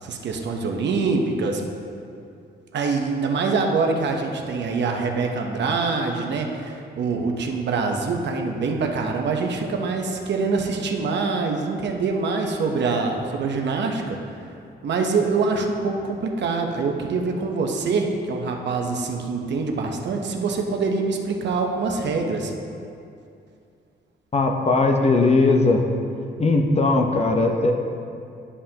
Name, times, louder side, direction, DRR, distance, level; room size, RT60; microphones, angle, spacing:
voice 1, 0.0-1.6 2.7-14.2 14.8-22.5, right 4 dB, 65° right, 2 dB, 0.9 m, -24 dB
voice 2, 24.3-25.8 26.4-27.7, left 3 dB, 35° left, 3 dB, 0.8 m, -19 dB
11.0 x 5.5 x 2.9 m, 2.5 s
cardioid pair, 85°, 19 cm